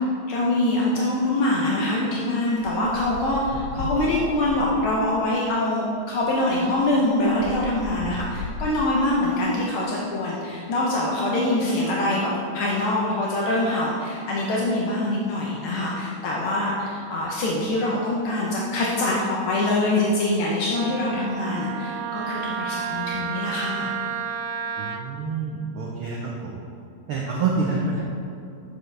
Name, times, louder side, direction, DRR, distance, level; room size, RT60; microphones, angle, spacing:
voice 1, 0.3-23.9, left 1 dB, 70° left, -4 dB, 1.3 m, -24 dB
sound 1, 2.6-5.1 6.1-6.2 6.5-9.1, left 3 dB, 85° left, 2.2 m, -36 dB
Wind instrument woodwind instrument, 20.7-25.0, right 7 dB, 90° right, 1.3 m, -31 dB
voice 2, 24.8-26.6 27.1-28.0, right 4 dB, 75° right, -3 dB, 1.2 m, -27 dB
9.3 x 6.9 x 3.3 m, 2.6 s
omnidirectional pair, 3.3 m